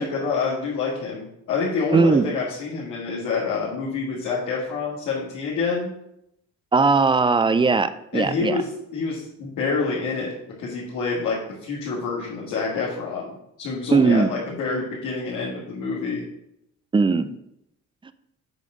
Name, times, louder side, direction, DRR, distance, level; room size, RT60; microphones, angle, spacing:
voice 1, 0.1-5.9 8.1-10.3 10.6-16.2, left 4 dB, 85° left, -7 dB, 2.0 m, -27 dB
voice 2, 1.9-2.3 6.7-8.6 13.9-14.3 16.9-17.3 18.0-18.1, right 4 dB, 15° right, 13 dB, 0.5 m, -19 dB
7.9 x 3.6 x 6.2 m, 0.80 s
cardioid pair, 90°, 30 cm